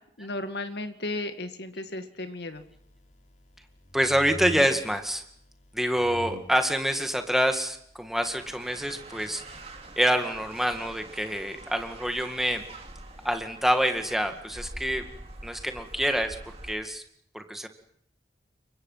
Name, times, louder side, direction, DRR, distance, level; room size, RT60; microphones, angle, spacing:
voice 1, 0.2-2.6, left 2 dB, 75° left, 8 dB, 2.0 m, -34 dB
sound 1, 2.5-14.8, left 1 dB, 45° left, 4.8 m, -48 dB
voice 2, 3.9-5.2 5.7-9.4 10.0-12.6 13.2-15.0 15.4-16.4 16.6-17.0 17.3-17.7, equal, ahead, 6 dB, 2.0 m, -26 dB
sound 2, 8.3-16.8, right 2 dB, 35° right, 3.1 m, -45 dB
28.5 x 23.5 x 5.8 m, 0.68 s
head